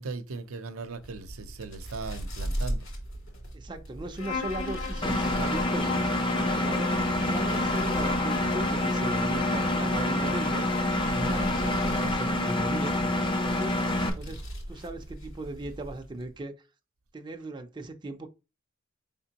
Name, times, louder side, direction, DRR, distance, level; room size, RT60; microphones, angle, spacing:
voice 1, 0.0-2.8 11.1-11.3 14.2-14.4, right 3 dB, 85° right, 0.6 m, -38 dB
sound 1, 1.0-16.4, right 1 dB, 65° left, 2.3 m, -39 dB
voice 2, 3.5-10.7 11.3-13.8 14.2-14.4 14.7-16.5 17.1-18.3, right 2 dB, 20° right, 0.5 m, -38 dB
Bowed string instrument, 4.2-12.1, left 4 dB, 80° left, 1.4 m, -36 dB
Engine, 5.0-14.1, left 1 dB, 25° left, 0.6 m, -27 dB
5.2 x 3.6 x 2.8 m
head